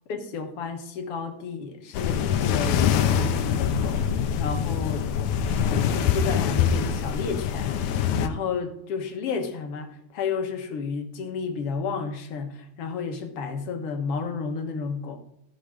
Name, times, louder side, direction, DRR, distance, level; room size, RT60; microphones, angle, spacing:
voice 1, 0.1-2.8 3.1-5.1 5.6-15.2, left 5 dB, 60° left, 5 dB, 2.1 m, -32 dB
sound 1, 1.9-8.3, left 8 dB, 80° left, 2.1 m, -24 dB
13.0 x 6.5 x 5.0 m, 0.75 s
omnidirectional pair, 3.3 m